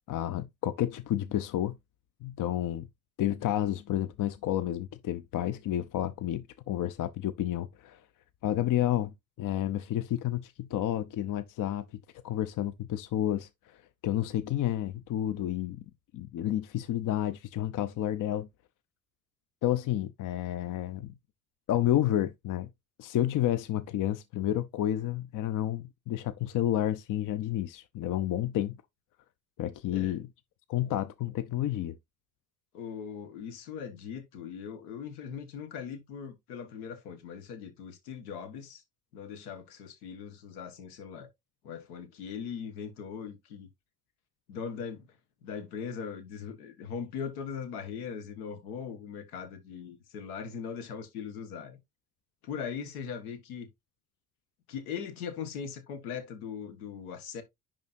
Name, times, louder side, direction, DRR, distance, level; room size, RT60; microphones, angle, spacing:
voice 1, 0.1-1.7 2.2-2.9 3.2-8.0 8.4-11.9 12.2-13.5 14.0-15.8 16.1-18.5 19.6-21.1 21.7-22.7 23.0-28.8 29.6-30.3 30.7-31.9, left 12 dB, 45° left, 0.7 m, -30 dB
voice 2, 32.7-38.8 39.1-41.3 41.6-43.7 44.5-45.1 45.4-51.8 52.4-53.7 54.7-57.4, left 7 dB, 80° left, 1.5 m, -40 dB
10.5 x 3.7 x 2.6 m
hypercardioid pair, 55°, 44 cm